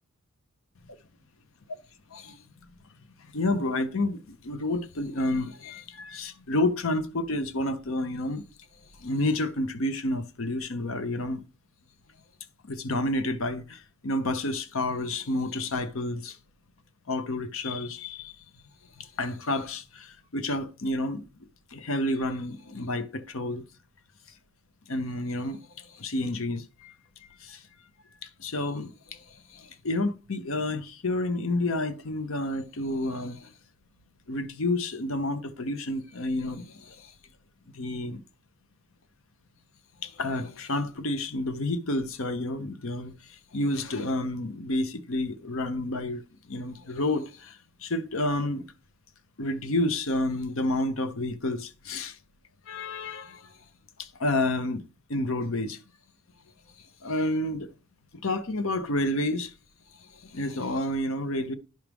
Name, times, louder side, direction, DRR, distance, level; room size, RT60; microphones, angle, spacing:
voice 1, 2.1-2.4 3.2-8.5 9.0-11.4 12.6-16.4 17.1-18.4 19.0-21.3 21.7-23.6 24.9-26.9 27.4-27.6 28.2-33.5 34.3-37.1 37.7-38.2 40.0-46.2 46.5-48.7 49.4-52.2 52.7-53.6 54.0-54.8 55.1-55.8 56.8-57.7 58.2-59.5 60.0-61.5, left 2 dB, 65° left, 0.8 m, -30 dB
10.5 x 6.0 x 3.5 m
head